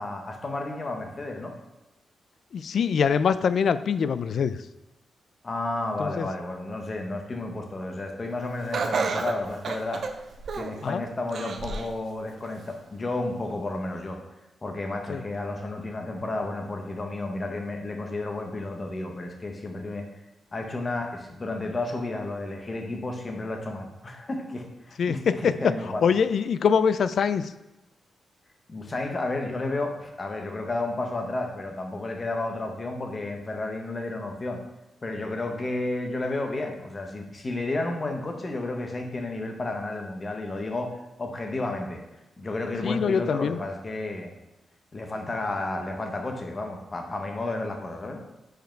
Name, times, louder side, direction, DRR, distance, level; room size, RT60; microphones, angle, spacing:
voice 1, 0.0-1.5 5.4-10.0 10.5-14.2 14.6-20.1 20.5-26.0 28.7-34.6 35.0-40.9 41.2-42.0 42.4-44.3 44.9-48.2, left 2 dB, 30° left, 3 dB, 1.1 m, -32 dB
voice 2, 2.5-4.6 6.0-6.3 10.8-11.0 15.1-15.2 25.0-25.5 26.0-27.5 42.8-43.6, left 6 dB, 65° left, 14 dB, 0.3 m, -24 dB
Laughter, 8.7-10.8 11.3-11.9 12.4-12.5 13.5-13.6, right 5 dB, 60° right, 0.5 m, -30 dB
5.0 x 5.0 x 4.5 m, 1.0 s
cardioid pair, 95°, 0 cm